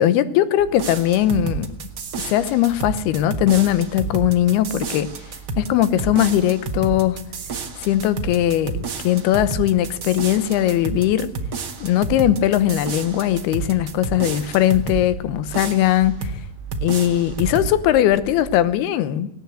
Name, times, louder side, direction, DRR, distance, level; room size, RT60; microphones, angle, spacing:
voice 1, 0.0-1.7 2.2-5.1 5.6-7.2 7.8-11.3 11.8-16.3 16.8-19.3, left 12 dB, 80° left, 14 dB, 2.9 m, -19 dB
sound 1, 0.6-18.8, right 5 dB, 30° right, 2.6 m, -41 dB
sound 2, 0.7-15.1 15.5-16.4 16.7-17.7, right 5 dB, 90° right, 0.9 m, -30 dB
18.5 x 18.0 x 8.0 m, 0.81 s
omnidirectional pair, 4.6 m